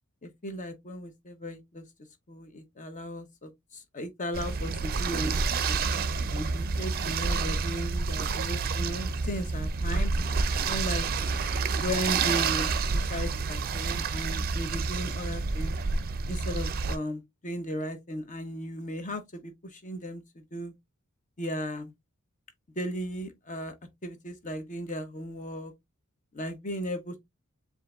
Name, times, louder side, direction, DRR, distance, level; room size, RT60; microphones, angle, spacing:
voice 1, 0.2-1.8 2.3-5.8 6.3-10.1 10.6-11.1 11.8-15.7 16.3-20.7 21.4-21.9 22.8-23.7 24.0-25.7 26.3-27.2, equal, 35° left, 0.9 m, -36 dB
sound 1, 4.3-17.0, right 4 dB, 45° right, 0.5 m, -29 dB
7.4 x 2.6 x 2.4 m
head